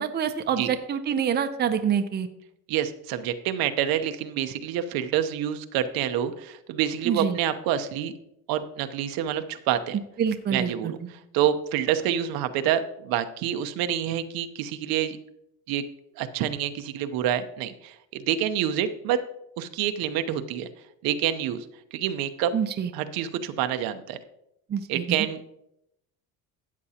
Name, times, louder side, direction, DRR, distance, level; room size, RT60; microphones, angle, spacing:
voice 1, 0.0-2.3 7.0-7.4 10.2-10.9 22.5-22.9 24.7-25.2, right 8 dB, 30° right, 8 dB, 0.6 m, -26 dB
voice 2, 2.7-8.1 8.5-10.0 10.5-15.2 15.7-15.8 16.2-19.2 19.6-20.7 21.0-21.7 21.9-22.5 22.9-24.2 24.9-25.5, right 10 dB, 75° right, 9 dB, 0.9 m, -27 dB
13.0 x 8.5 x 2.8 m, 0.80 s
cardioid pair, 140°, 36 cm